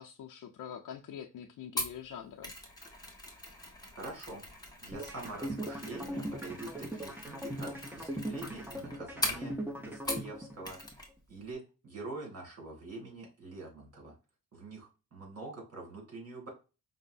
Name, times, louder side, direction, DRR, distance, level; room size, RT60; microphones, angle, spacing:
voice 1, 0.0-2.5, left 8 dB, 75° left, 1 dB, 0.5 m, -45 dB
Mechanisms, 1.8-10.4 10.6-11.1 11.4-11.5, left 1 dB, 10° left, 1.1 m, -41 dB
voice 2, 3.9-4.4 4.8-10.8 11.3-14.1 14.5-16.5, right 2 dB, 50° right, 0 dB, 2.1 m, -45 dB
sound 1, 4.9-10.9, right 1 dB, 5° right, 0.6 m, -39 dB
5.3 x 2.0 x 2.5 m, 0.30 s
cardioid pair, 115°, 32 cm